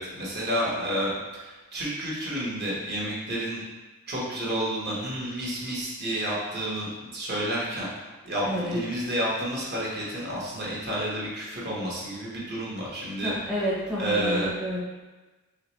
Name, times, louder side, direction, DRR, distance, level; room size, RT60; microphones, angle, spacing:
voice 1, 0.0-3.6 4.1-7.9 8.2-13.3 14.0-14.5, right 1 dB, 45° right, -6 dB, 1.2 m, -30 dB
voice 2, 8.4-8.9 13.2-14.8, equal, 5° right, -8 dB, 0.7 m, -29 dB
4.8 x 3.1 x 3.1 m, 1.2 s
head